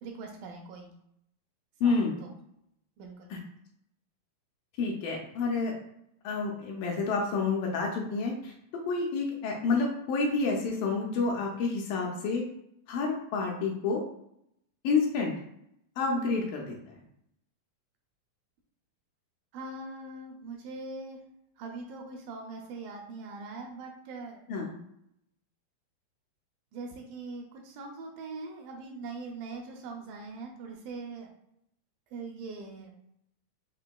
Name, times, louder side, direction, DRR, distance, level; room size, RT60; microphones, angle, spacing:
voice 1, 0.0-0.9 1.8-2.3 3.0-3.3 19.5-21.2 21.6-24.4 26.7-31.3 32.1-32.9, right 3 dB, 80° right, 2 dB, 2.1 m, -42 dB
voice 2, 1.8-2.1 3.3-3.4 4.8-5.7 6.2-8.5 8.9-12.4 12.9-14.0 14.8-15.3 16.0-17.0 24.5-24.7, left 4 dB, 80° left, 0 dB, 2.2 m, -29 dB
5.8 x 2.6 x 2.2 m, 0.76 s
omnidirectional pair, 4.3 m